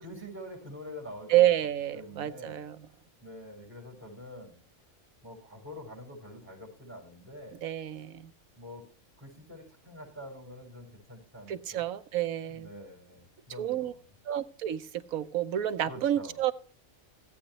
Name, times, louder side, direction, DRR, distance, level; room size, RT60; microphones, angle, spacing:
voice 1, 0.0-1.5 1.9-2.6 3.2-4.5 5.2-7.6 8.6-8.8 9.2-11.8 12.4-14.0 15.8-16.4, left 1 dB, 10° right, 0 dB, 6.5 m, -46 dB
voice 2, 1.3-2.8 7.6-8.3 11.5-12.7 13.6-13.9 14.3-14.9 15.1-16.5, right 12 dB, 85° right, 12 dB, 1.2 m, -29 dB
16.5 x 8.8 x 3.0 m, 0.41 s
omnidirectional pair, 1.4 m